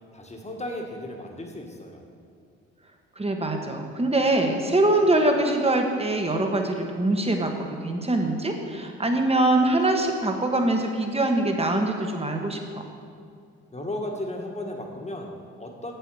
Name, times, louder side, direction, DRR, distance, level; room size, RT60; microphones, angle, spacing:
voice 1, 0.1-2.0 13.7-15.9, left 1 dB, 20° left, 1 dB, 1.8 m, -35 dB
voice 2, 3.2-12.8, right 2 dB, 20° right, 3 dB, 1.5 m, -23 dB
8.2 x 7.9 x 5.0 m, 2.4 s
hypercardioid pair, 50°, 32 cm